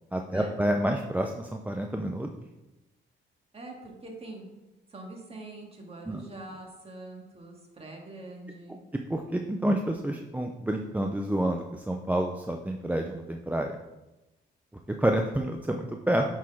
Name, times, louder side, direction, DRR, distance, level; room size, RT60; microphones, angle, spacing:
voice 1, 0.1-2.3 6.1-6.2 9.1-13.8 14.9-16.3, right 1 dB, 10° right, 3 dB, 0.5 m, -28 dB
voice 2, 3.5-4.5 4.9-8.8, right 2 dB, 30° right, 0 dB, 1.9 m, -44 dB
7.2 x 4.2 x 4.7 m, 1.0 s
cardioid pair, 90°, 20 cm